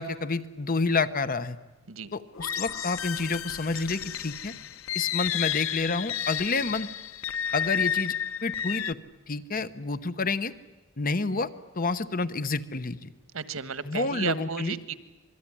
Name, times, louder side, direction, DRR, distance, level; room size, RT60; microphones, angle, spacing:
voice 1, 0.0-1.6 2.1-4.5 4.9-6.9 7.5-8.1 8.4-9.0 9.3-10.5 11.0-13.1 13.8-14.8, left 3 dB, 45° left, 13 dB, 1.0 m, -29 dB
sound 1, 2.3-8.9, left 9 dB, 85° left, 0.8 m, -31 dB
voice 2, 13.3-14.9, right 6 dB, 85° right, 13 dB, 1.4 m, -33 dB
26.5 x 21.0 x 10.0 m, 1.1 s
head